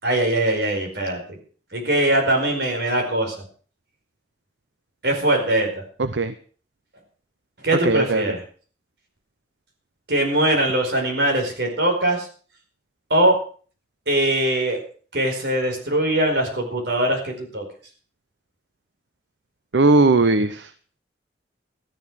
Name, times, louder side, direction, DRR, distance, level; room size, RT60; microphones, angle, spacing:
voice 1, 0.0-1.4 1.7-3.3 5.0-5.8 7.6-8.4 10.1-12.3 13.1-13.4 14.1-14.8 15.1-17.6, right 1 dB, 65° right, 2 dB, 4.8 m, -21 dB
voice 2, 6.0-6.3 7.8-8.3 19.7-20.7, right 3 dB, 80° right, 12 dB, 0.8 m, -18 dB
13.5 x 11.0 x 6.3 m, 0.43 s
head